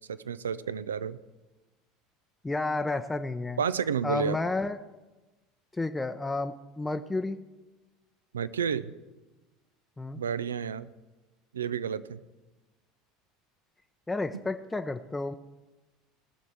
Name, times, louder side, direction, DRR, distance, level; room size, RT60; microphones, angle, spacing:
voice 1, 0.1-1.2 3.6-4.4 8.3-8.9 10.2-10.9 11.5-12.2 14.3-14.4, right 7 dB, 85° right, 15 dB, 0.4 m, -31 dB
voice 2, 2.4-3.6 4.0-4.8 5.7-7.4 10.0-10.2 14.1-15.3, left 2 dB, 15° left, 7 dB, 0.6 m, -31 dB
18.5 x 6.4 x 6.0 m, 1.1 s
hypercardioid pair, 75°, 0 cm